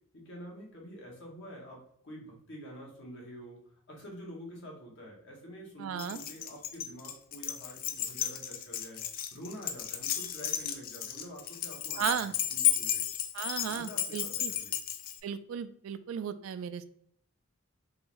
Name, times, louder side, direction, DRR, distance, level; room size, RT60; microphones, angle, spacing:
voice 1, 0.1-9.0 9.3-13.0 13.7-14.8, equal, 60° left, -2 dB, 1.2 m, -47 dB
voice 2, 5.8-6.2 12.0-12.3 13.3-14.5 15.2-16.9, right 8 dB, 75° right, 13 dB, 0.3 m, -35 dB
Keys jangling, 6.0-15.2, left 11 dB, 45° left, 0.3 m, -33 dB
3.7 x 2.6 x 3.1 m, 0.65 s
head